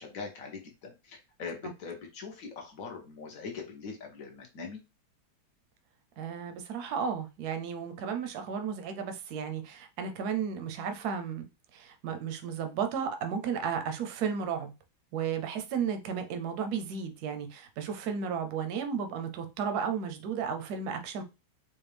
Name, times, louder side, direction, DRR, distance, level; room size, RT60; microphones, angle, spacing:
voice 1, 0.0-4.8, left 5 dB, 60° left, 1.0 m, -42 dB
voice 2, 6.2-11.5 11.7-14.7 15.1-21.2, right 7 dB, 65° right, 1.0 m, -33 dB
4.3 x 2.3 x 3.3 m
omnidirectional pair, 2.2 m